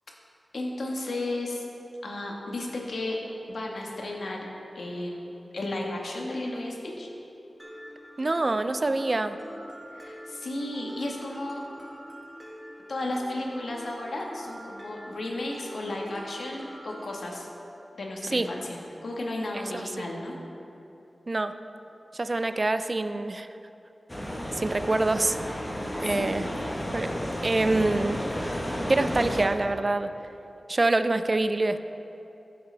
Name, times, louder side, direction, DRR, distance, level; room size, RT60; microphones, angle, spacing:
voice 1, 0.5-1.6 2.0-3.2 3.5-4.4 4.7-7.1 9.9-11.6 12.9-17.5 17.9-18.8 19.0-20.3 25.5-25.7 26.1-26.6, left 1 dB, 75° left, -1 dB, 1.4 m, -34 dB
Mallet percussion, 7.6-17.2, equal, 15° right, 1.7 m, -45 dB
voice 2, 8.2-9.4 18.3-18.5 19.7-19.9 21.3-21.6 22.1-23.5 24.6-25.4 26.0-26.5 26.9-27.1 27.4-28.2 28.9-30.1 30.7-31.8, right 2 dB, 35° right, 10 dB, 0.4 m, -25 dB
sound 1, 24.1-29.5, equal, 15° left, 1.1 m, -32 dB
14.0 x 7.8 x 3.4 m, 3.0 s
wide cardioid pair, 110°, 0 cm